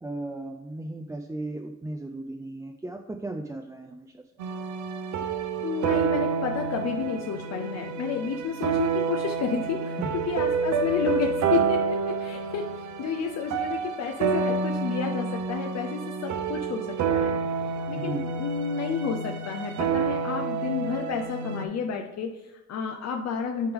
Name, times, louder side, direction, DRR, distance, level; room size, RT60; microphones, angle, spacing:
voice 1, 0.0-4.2 9.9-10.1 17.9-18.3, right 2 dB, 10° right, 4 dB, 0.4 m, -36 dB
sound 1, 4.4-21.6, right 5 dB, 70° right, 0.7 m, -28 dB
voice 2, 5.6-10.0 10.3-17.4 17.9-23.7, left 6 dB, 60° left, 3 dB, 0.6 m, -31 dB
9.0 x 3.4 x 3.5 m, 1.0 s
cardioid pair, 90°, 30 cm